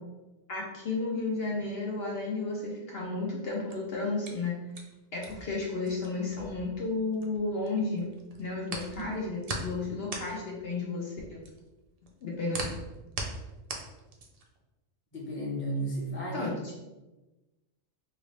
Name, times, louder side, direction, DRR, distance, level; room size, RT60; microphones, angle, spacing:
voice 1, 0.5-4.6 5.1-8.1 8.4-11.4 12.2-12.6 16.3-16.5, left 3 dB, 65° left, -2 dB, 0.8 m, -33 dB
sound 1, 3.5-7.7 8.0-14.6, right 3 dB, 70° right, 0.3 m, -40 dB
voice 2, 8.8-9.1 15.1-16.5, right 1 dB, 10° left, -4 dB, 0.6 m, -34 dB
3.2 x 2.5 x 3.1 m, 1.1 s
omnidirectional pair, 1.3 m